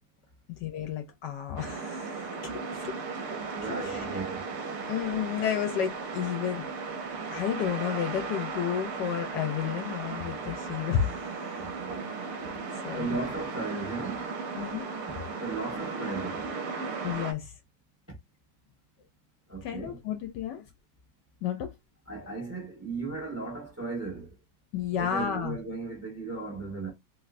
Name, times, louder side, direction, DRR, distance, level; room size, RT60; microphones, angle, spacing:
voice 1, 0.6-2.5 2.8-3.0 3.8-4.0 4.9-6.7 7.3-11.1 12.8-13.1 14.6-14.9 17.0-17.5 19.6-20.6 21.4-21.7 24.7-25.6, left 9 dB, 75° left, 1.1 m, -31 dB
sound 1, 1.6-17.3, right 4 dB, 65° right, 1.0 m, -36 dB
voice 2, 3.5-4.5 11.6-12.1 12.9-14.3 15.4-16.5 19.5-20.0 22.1-24.4 24.9-26.9, right 3 dB, 10° right, 0.8 m, -36 dB
3.3 x 2.8 x 2.4 m
omnidirectional pair, 2.1 m